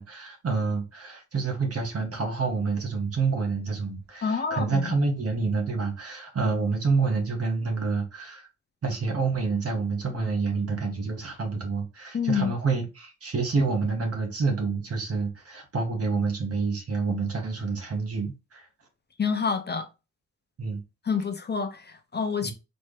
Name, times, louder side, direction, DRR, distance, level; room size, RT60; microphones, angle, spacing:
voice 1, 0.0-8.5 8.8-18.7 20.6-20.8 22.4-22.5, right 4 dB, 50° right, 1.5 m, -28 dB
voice 2, 4.2-4.9 12.1-12.5 19.2-19.9 21.1-22.5, left 5 dB, 35° left, 0.6 m, -27 dB
4.3 x 3.4 x 3.3 m
wide cardioid pair, 145°, 31 cm